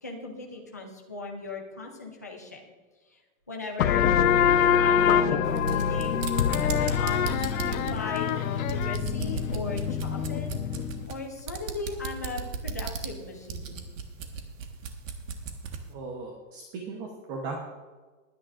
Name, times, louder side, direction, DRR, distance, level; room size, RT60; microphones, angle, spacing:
voice 1, 0.0-2.6 3.1-3.2 3.5-4.1 4.8-6.2 6.6-8.3 8.7-10.6 11.1-13.8, left 3 dB, 15° left, -1 dB, 0.3 m, -38 dB
sound 1, 3.8-11.1, left 8 dB, 90° left, 1.0 m, -25 dB
sound 2, 5.5-15.9, right 5 dB, 70° right, 1.6 m, -36 dB
voice 2, 15.9-17.7, right 3 dB, 25° right, 1 dB, 1.0 m, -37 dB
21.0 x 9.7 x 2.5 m, 1.3 s
supercardioid pair, 175°, 40 cm